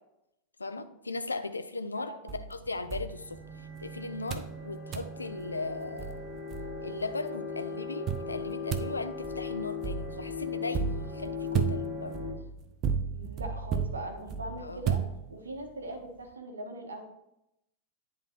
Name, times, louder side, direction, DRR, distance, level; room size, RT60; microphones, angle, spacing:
voice 1, 0.6-6.3 6.8-12.2 14.6-14.8, left 3 dB, 80° left, 10 dB, 0.4 m, -37 dB
voice 2, 2.0-2.4 13.0-15.0 15.3-17.0, right 1 dB, 75° right, 4 dB, 1.1 m, -40 dB
sound 1, 2.3-3.8 4.3-4.6 4.9-5.2 5.7-5.8 6.0-7.1 8.1-15.6, right 7 dB, 35° right, 0.5 m, -34 dB
sound 2, 2.7-12.3, left 5 dB, 20° left, 2.5 m, -39 dB
10.0 x 3.7 x 2.8 m, 0.84 s
figure-of-eight pair, 90°, 0 cm